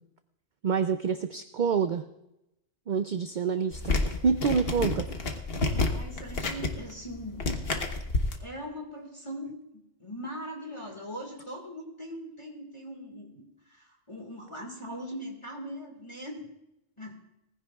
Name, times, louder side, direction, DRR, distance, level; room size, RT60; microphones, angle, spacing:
voice 1, 0.6-2.0 2.9-3.9 4.2-5.1, right 6 dB, 55° right, 9 dB, 0.6 m, -27 dB
sound 1, 3.7-8.4, left 2 dB, 55° left, 1.3 m, -30 dB
voice 2, 5.9-7.4 8.3-16.5 17.0-17.1, equal, 25° left, 0 dB, 1.8 m, -40 dB
19.5 x 15.0 x 2.3 m, 0.87 s
omnidirectional pair, 1.3 m